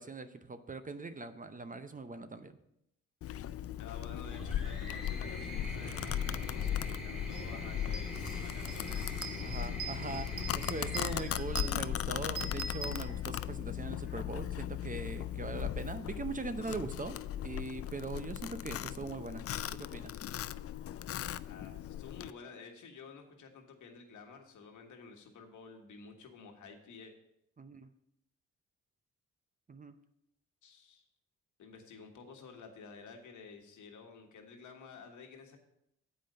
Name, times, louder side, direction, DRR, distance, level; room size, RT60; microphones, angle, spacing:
voice 1, 0.0-2.6 9.4-17.2 17.4-20.2 27.6-27.9 29.7-30.0, right 3 dB, 25° right, 10 dB, 0.7 m, -41 dB
Domestic sounds home sounds, 3.2-22.3, left 11 dB, 50° left, 0.4 m, -38 dB
voice 2, 3.8-9.5 21.3-27.1 30.6-31.0 31.6-35.6, left 5 dB, 70° left, 3 dB, 1.5 m, -52 dB
sound 1, 4.2-12.6 13.8-14.5, equal, ahead, 2.3 m, -44 dB
sound 2, 7.3-7.4 7.8-13.6, right 7 dB, 70° right, 1.0 m, -45 dB
7.7 x 5.1 x 6.6 m, 0.79 s
cardioid pair, 70°, 31 cm